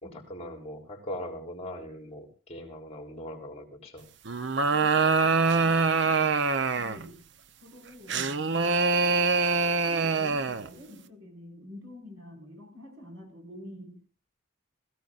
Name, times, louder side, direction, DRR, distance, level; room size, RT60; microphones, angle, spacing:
voice 1, 0.0-4.1, left 1 dB, 30° left, 2 dB, 3.4 m, -40 dB
sound 1, 4.3-7.1 8.1-10.7, right 4 dB, 55° right, 0.8 m, -24 dB
voice 2, 6.7-7.2 7.6-9.3 9.9-14.0, left 1 dB, 80° right, 2 dB, 5.4 m, -48 dB
21.0 x 15.5 x 2.5 m, 0.38 s
head